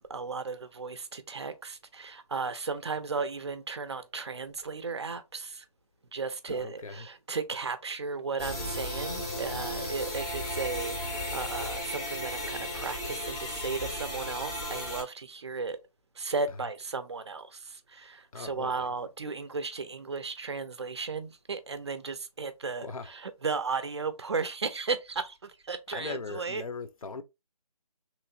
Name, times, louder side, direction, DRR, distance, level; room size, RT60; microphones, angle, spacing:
voice 1, 0.1-5.7 6.1-15.8 16.2-26.6, right 4 dB, 45° right, 0.5 m, -35 dB
voice 2, 6.5-7.1 18.3-18.9 22.8-23.1 25.9-27.2, left 4 dB, 60° left, 0.6 m, -39 dB
sound 1, 8.4-15.0, left 1 dB, 10° left, 0.6 m, -35 dB
3.1 x 2.8 x 2.6 m
figure-of-eight pair, 155°, 20 cm